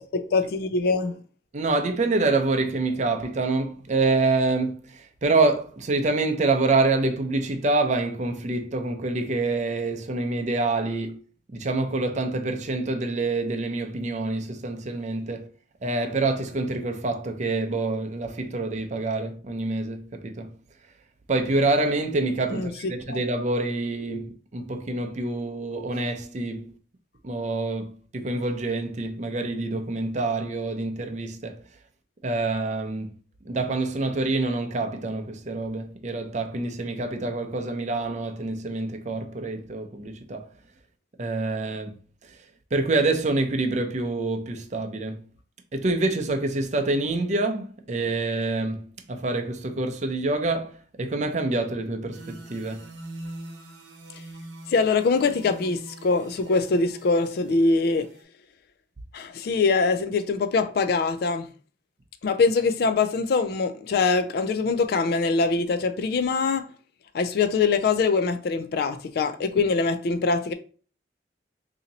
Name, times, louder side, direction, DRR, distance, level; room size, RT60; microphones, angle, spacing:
voice 1, 0.1-1.2 22.5-22.7 23.1-23.2 54.7-58.1 59.1-61.5 62.2-66.7 67.1-70.5, left 4 dB, 60° left, 0.3 m, -23 dB
voice 2, 1.5-11.2 11.5-15.5 15.8-20.5 21.3-26.7 27.2-31.6 32.2-33.1 33.4-40.5 41.2-42.0 42.2-42.4 42.7-45.2 45.7-52.9, right 2 dB, 40° right, 0.6 m, -26 dB
sound 1, 52.1-58.2, right 1 dB, 80° right, 0.8 m, -43 dB
2.8 x 2.8 x 3.9 m
head